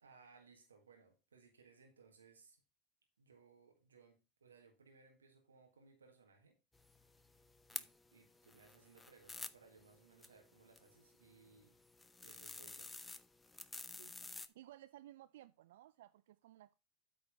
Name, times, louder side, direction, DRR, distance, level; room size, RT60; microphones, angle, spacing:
voice 1, 0.0-2.6 3.2-6.6 7.7-11.8 12.2-12.9, right 5 dB, 85° right, 1.7 m, -64 dB
sound 1, 6.7-14.5, left 3 dB, 15° left, 0.7 m, -52 dB
voice 2, 13.9-16.7, right 14 dB, 70° right, 0.4 m, -58 dB
8.8 x 4.2 x 5.5 m
hypercardioid pair, 85°, 0 cm